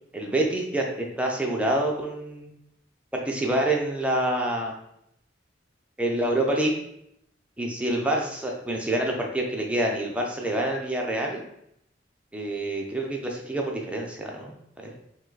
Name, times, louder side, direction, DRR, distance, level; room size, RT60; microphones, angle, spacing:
voice 1, 0.1-2.5 3.1-4.7 6.0-6.7 7.6-11.4 12.3-14.5 14.8-14.9, right 1 dB, 5° right, 0 dB, 0.6 m, -27 dB
5.0 x 2.2 x 3.9 m, 0.75 s
head